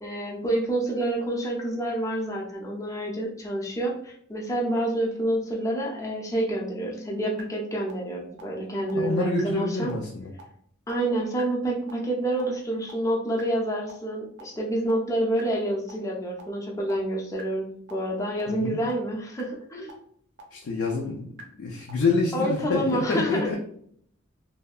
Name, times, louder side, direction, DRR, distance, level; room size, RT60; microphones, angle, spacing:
voice 1, 0.0-9.9 10.9-19.9 22.3-23.6, right 1 dB, 15° left, -2 dB, 0.5 m, -28 dB
sound 1, 5.0-7.4 7.9-8.0 8.4-8.5 8.9-9.0 9.4-9.5 9.9-10.0 10.4-10.5 10.9-11.0 11.4-11.5 11.9-12.0 12.4-12.5 12.9-13.0 13.4-13.5 13.9-14.0 14.4-14.5 14.9-15.0 15.4-15.5 15.9-16.0 16.4-16.5 16.9-17.0 17.4-17.5 17.9-18.0 18.4-18.5 18.9-19.0 19.4-19.5 19.9-20.0 20.4-20.5 20.9-21.0 21.4-21.5 21.9-22.0 22.4-22.5 22.9-23.0, equal, 60° right, 0.6 m, -43 dB
voice 2, 8.9-10.3 18.5-18.8 20.5-21.3 21.6-23.6, left 3 dB, 70° left, -1 dB, 0.4 m, -27 dB
2.7 x 2.2 x 2.3 m, 0.64 s
head